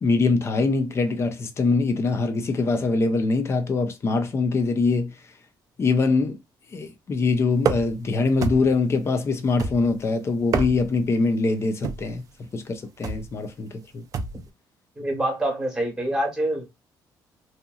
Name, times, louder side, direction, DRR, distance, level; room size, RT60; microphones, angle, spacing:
voice 1, 0.0-5.1 5.8-6.4 6.7-12.2 12.5-14.0, left 3 dB, 35° left, 0.6 m, -23 dB
sound 1, 7.6-8.1 8.4-8.9 9.6-10.0 10.4-11.0 11.8-12.2 13.0-13.3 14.1-14.5, right 5 dB, 45° right, 0.4 m, -28 dB
voice 2, 15.0-16.7, right 1 dB, 5° right, 1.2 m, -26 dB
2.8 x 2.6 x 2.3 m
cardioid pair, 135°, 8 cm